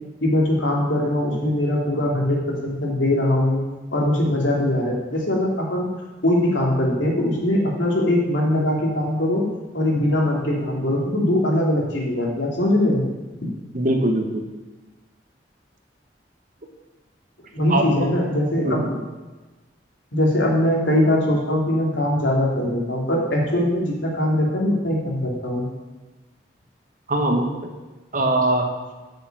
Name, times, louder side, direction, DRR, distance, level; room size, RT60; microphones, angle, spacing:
voice 1, 0.2-3.6 3.9-5.9 6.2-9.4 9.7-13.0 17.5-18.8 20.1-25.6, left 1 dB, 90° left, -2 dB, 3.1 m, -21 dB
voice 2, 13.7-14.4 17.7-18.1 18.6-18.9 27.1-27.7 28.1-28.7, right 1 dB, 45° right, 3 dB, 1.3 m, -21 dB
9.8 x 6.8 x 7.5 m, 1.2 s
head